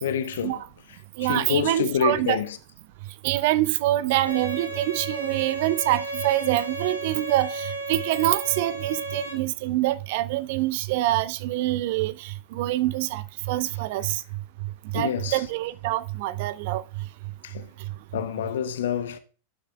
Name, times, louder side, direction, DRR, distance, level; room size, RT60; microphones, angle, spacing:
voice 1, 0.0-0.6 0.9-2.6 14.9-15.4 17.4-17.7 18.1-19.2, left 8 dB, 60° left, 0.8 m, -27 dB
voice 2, 1.2-2.4 3.2-13.2 13.5-14.2 14.9-16.8, right 15 dB, 50° right, 0.5 m, -25 dB
Bowed string instrument, 4.3-9.3, right 2 dB, 85° right, 2.1 m, -33 dB
11.5 x 6.5 x 2.2 m
figure-of-eight pair, 90°, 0 cm